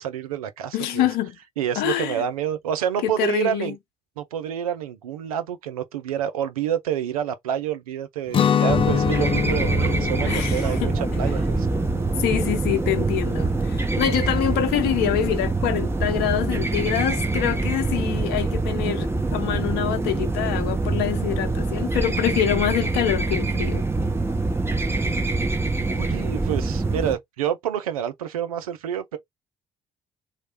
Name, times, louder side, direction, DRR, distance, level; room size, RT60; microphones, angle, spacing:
voice 1, 0.0-1.1 1.6-3.8 4.2-11.7 25.9-29.2, right 10 dB, 80° right, 0.5 m, -28 dB
voice 2, 0.7-1.3 1.8-2.2 3.0-3.7 10.3-10.9 12.2-23.9, left 11 dB, 65° left, 0.8 m, -25 dB
Guitar, 8.3-14.1, left 8 dB, 30° left, 0.3 m, -26 dB
sound 1, 8.7-27.2, right 3 dB, 15° right, 0.9 m, -25 dB
3.2 x 2.2 x 4.3 m
figure-of-eight pair, 45°, 18 cm